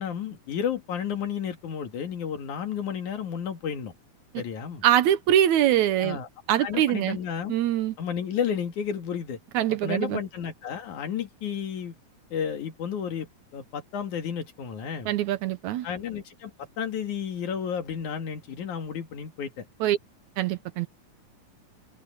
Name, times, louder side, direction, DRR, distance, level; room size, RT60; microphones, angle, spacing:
voice 1, 0.0-3.9 4.4-4.8 6.0-6.3 6.6-7.5 8.0-9.4 9.7-11.9 12.3-15.1 15.8-19.7, left 8 dB, 70° left, 3.4 m, -32 dB
voice 2, 4.8-6.2 6.5-7.2 7.5-7.9 9.6-10.2 15.1-15.9 19.8-20.0 20.4-20.9, right 11 dB, 75° right, 2.1 m, -23 dB
omnidirectional pair, 3.6 m